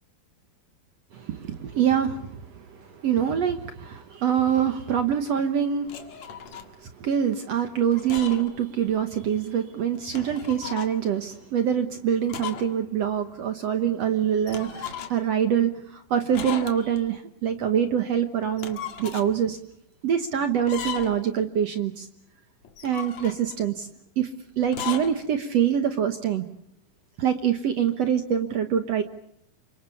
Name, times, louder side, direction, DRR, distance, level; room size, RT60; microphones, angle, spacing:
voice 1, 1.1-6.0 6.4-19.6 20.0-22.1 22.8-23.9 24.2-24.3 24.6-26.5 27.2-29.0, right 8 dB, 65° right, 8 dB, 1.7 m, -25 dB
sound 1, 5.9-6.7 7.9-8.6 8.9-9.0 9.9-11.0 12.3-12.7 13.0-13.1 14.5-15.3 16.3-17.0 18.4-19.3 20.6-21.3 22.6-23.6 24.6-25.1, left 8 dB, 50° left, 2.7 m, -36 dB
28.5 x 25.0 x 7.1 m, 0.73 s
omnidirectional pair, 4.4 m